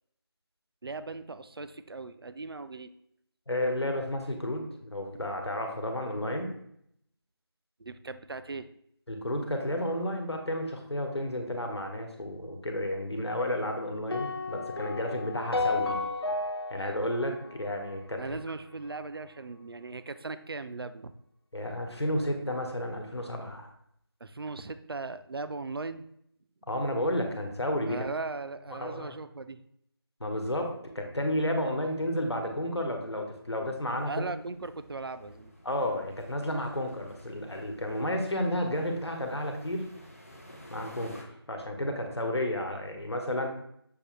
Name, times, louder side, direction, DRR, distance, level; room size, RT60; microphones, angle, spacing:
voice 1, 0.8-2.9 7.8-8.7 16.7-16.9 18.2-21.1 24.2-26.1 27.9-29.6 34.1-35.5, right 3 dB, 65° right, 11 dB, 0.4 m, -38 dB
voice 2, 3.5-6.5 9.1-16.0 16.7-18.4 21.5-23.7 26.7-28.0 28.7-29.1 30.2-34.3 35.6-39.9 40.7-43.5, left 1 dB, 80° left, 3 dB, 1.1 m, -32 dB
sound 1, 14.1-18.4, left 3 dB, 65° left, 0.8 m, -33 dB
sound 2, 33.7-41.2, left 1 dB, 35° left, 0.6 m, -52 dB
6.5 x 2.5 x 3.1 m, 0.71 s
figure-of-eight pair, 170°, 14 cm